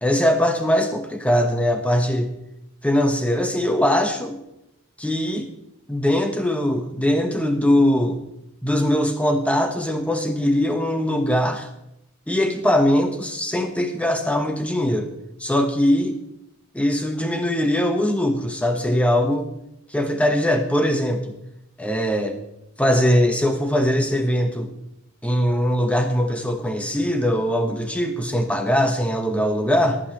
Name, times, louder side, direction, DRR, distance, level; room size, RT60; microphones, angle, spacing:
voice 1, 0.0-2.3 2.8-4.4 5.0-5.5 5.9-8.2 8.6-11.7 12.3-15.1 15.4-16.2 16.7-19.5 19.9-21.3 21.8-22.4 22.8-24.7 25.2-30.0, equal, 5° left, 5 dB, 1.1 m, -21 dB
19.0 x 8.8 x 3.0 m, 0.83 s
head